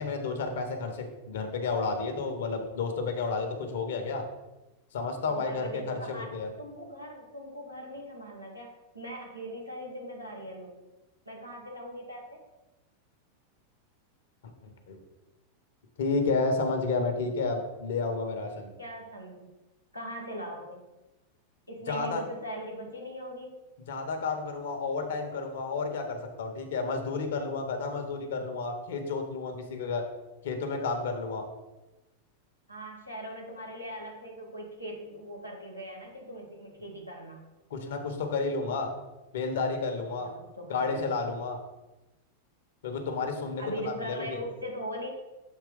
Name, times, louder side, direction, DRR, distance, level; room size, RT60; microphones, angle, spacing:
voice 1, 0.0-4.2 4.9-6.5 14.6-15.0 16.0-18.7 21.9-22.2 23.9-30.0 30.4-31.4 37.7-38.9 39.3-40.3 40.7-41.6 42.8-44.4, left 4 dB, 60° left, 5 dB, 1.1 m, -31 dB
voice 2, 5.3-10.8 11.2-12.4 18.8-19.5 19.9-20.8 21.7-23.6 32.7-37.4 40.2-41.1 43.6-45.1, equal, 90° right, -2 dB, 1.5 m, -40 dB
7.3 x 3.2 x 5.0 m, 1.1 s
figure-of-eight pair, 90°, 0 cm